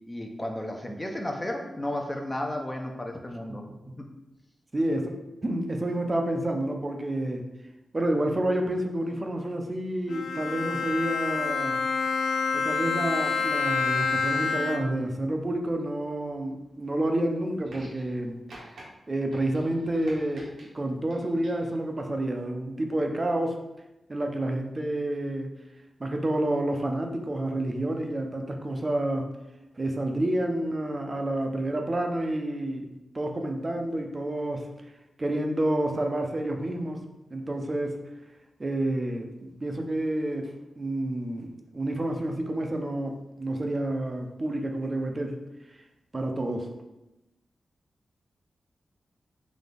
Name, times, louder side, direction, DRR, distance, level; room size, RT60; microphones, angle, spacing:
voice 1, 0.1-3.7 4.0-4.1, left 1 dB, 20° left, 2 dB, 0.7 m, -33 dB
voice 2, 4.7-7.4 7.9-11.8 12.5-18.4 19.1-23.6 24.1-25.5 26.0-29.3 29.8-32.9 33.1-34.7 35.2-37.0 37.3-38.0 38.6-41.5 41.7-45.4 46.1-46.7, right 1 dB, 35° right, 3 dB, 0.6 m, -29 dB
Bowed string instrument, 10.1-15.1, left 5 dB, 90° left, 0.3 m, -28 dB
sound 1, 17.6-18.2 18.5-18.8 19.3-20.7 21.1-21.7 22.8-22.9, right 1 dB, 85° right, 1.3 m, -48 dB
4.1 x 2.8 x 3.4 m, 0.96 s
cardioid pair, 55°, 0 cm